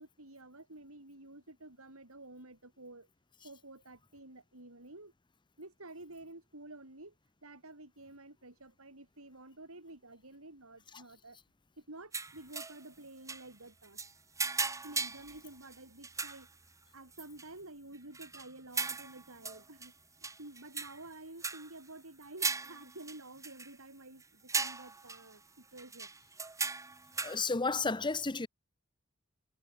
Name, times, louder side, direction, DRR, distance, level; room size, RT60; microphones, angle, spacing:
voice 1, 0.0-3.1 3.4-5.1 5.6-7.1 7.4-11.4 11.8-14.0 14.8-16.5 16.9-19.9 20.2-26.1, right 2 dB, 85° right, 6.1 m, -51 dB
sound 1, 12.1-12.8 13.3-13.5 13.8-15.8 16.0-16.5 17.1-17.5 17.9-19.9 20.2-21.1 21.4-21.7 22.2-23.7 24.2-24.3 24.5-25.4 25.8-27.5, right 4 dB, 15° right, 1.6 m, -38 dB
voice 2, 27.2-28.5, left 4 dB, 20° left, 0.9 m, -32 dB
head